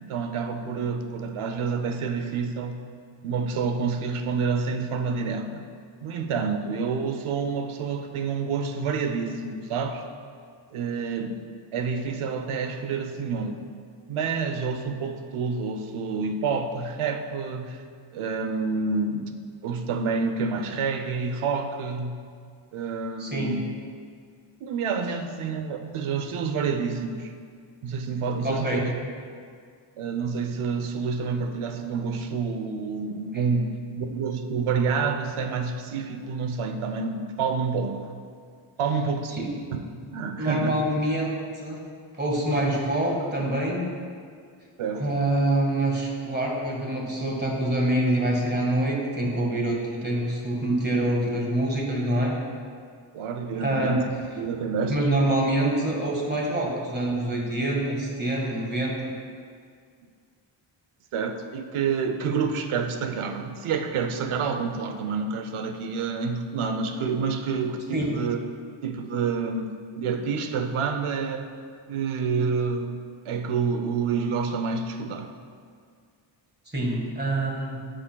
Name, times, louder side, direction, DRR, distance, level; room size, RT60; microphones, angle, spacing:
voice 1, 0.0-2.8 3.2-5.7 6.0-10.0 10.7-11.4 11.7-13.7 14.1-17.8 18.1-19.3 19.6-22.3 22.7-23.8 24.6-27.3 27.8-28.9 30.0-38.1 38.8-40.9 44.8-45.2 53.1-55.1 61.1-68.4 68.8-71.5 71.9-73.0 73.2-75.3, right 5 dB, 85° right, 6 dB, 0.8 m, -28 dB
voice 2, 23.2-23.5 28.4-28.8 39.3-39.5 40.4-41.8 42.2-43.8 45.0-52.3 53.6-54.0 54.9-59.1 67.9-68.1 76.7-77.8, right 1 dB, 20° right, -2 dB, 1.6 m, -25 dB
12.5 x 6.2 x 2.3 m, 2.1 s
wide cardioid pair, 115°, 48 cm